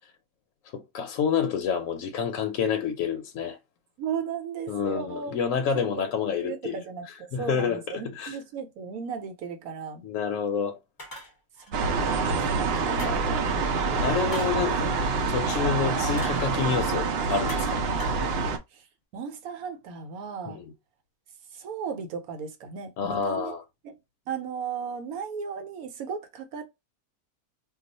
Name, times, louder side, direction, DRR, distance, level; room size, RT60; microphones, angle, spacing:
voice 1, 0.7-3.6 4.7-6.8 7.3-8.4 10.0-10.8 13.0-13.1 14.0-14.9 15.3-17.8 20.5-20.7 23.0-23.6, left 6 dB, 70° left, 0.9 m, -28 dB
voice 2, 4.0-5.4 6.4-10.0 11.7-13.4 13.7-14.1 18.7-18.9 19.1-20.6 21.5-23.5 23.8-23.9 24.3-26.6, right 6 dB, 80° right, 1.1 m, -36 dB
sound 1, 11.0-11.7 13.0-13.4 14.3-14.6 16.2-16.5 17.5-17.7 18.0-18.3, equal, 25° left, 0.4 m, -41 dB
sound 2, 11.7-18.6, right 4 dB, 65° right, 0.6 m, -26 dB
2.4 x 2.3 x 3.9 m
omnidirectional pair, 1.5 m